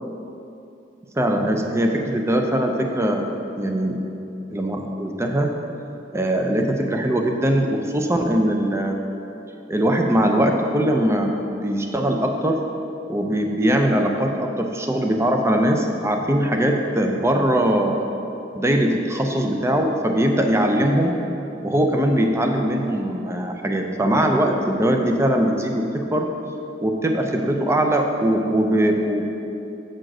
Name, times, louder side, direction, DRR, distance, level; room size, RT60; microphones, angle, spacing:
voice 1, 1.2-3.3 3.6-4.0 4.5-5.5 6.1-9.0 9.7-11.3 11.6-12.6 13.1-18.0 18.5-21.2 21.6-26.3 26.8-29.2, right 1 dB, 15° right, 3 dB, 0.6 m, -21 dB
7.7 x 4.5 x 6.1 m, 2.8 s
head